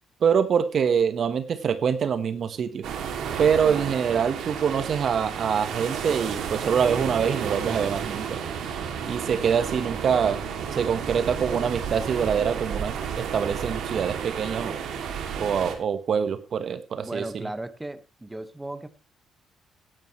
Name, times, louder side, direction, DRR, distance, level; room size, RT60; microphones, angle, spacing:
voice 1, 0.2-2.9 3.4-8.4 9.1-10.4 10.7-14.8 15.4-17.2, right 7 dB, 55° right, 11 dB, 1.3 m, -25 dB
sound 1, 2.8-15.7, right 7 dB, 80° right, 2.6 m, -32 dB
voice 2, 17.0-18.9, right 2 dB, 15° right, 11 dB, 1.4 m, -36 dB
17.0 x 10.5 x 3.2 m, 0.29 s
cardioid pair, 90°, 0 cm